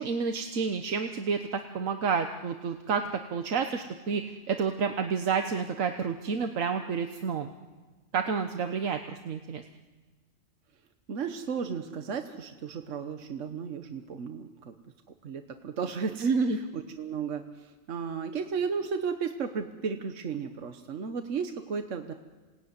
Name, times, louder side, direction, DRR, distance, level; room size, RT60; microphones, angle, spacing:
voice 1, 0.0-7.5 8.1-9.6 16.2-16.6, right 5 dB, 90° right, 6 dB, 1.5 m, -29 dB
voice 2, 11.1-14.7 15.2-22.1, right 6 dB, 70° right, 7 dB, 1.5 m, -34 dB
27.5 x 18.5 x 9.6 m, 1.3 s
omnidirectional pair, 1.3 m